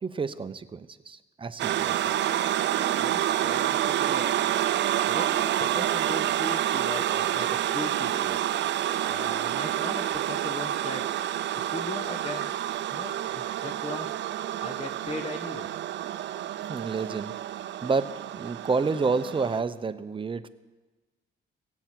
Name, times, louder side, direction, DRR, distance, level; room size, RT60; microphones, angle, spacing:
voice 1, 0.0-2.0 16.7-17.4 17.8-20.5, right 4 dB, 25° right, 12 dB, 0.7 m, -29 dB
sound 1, 1.6-19.6, right 12 dB, 65° right, 0.5 m, -28 dB
voice 2, 3.0-4.6 5.0-8.4 9.1-11.0 11.7-12.6 12.9-14.2 14.6-15.7, left 2 dB, 30° left, 4 dB, 1.1 m, -38 dB
16.5 x 8.2 x 7.5 m, 1.2 s
cardioid pair, 90°, 20 cm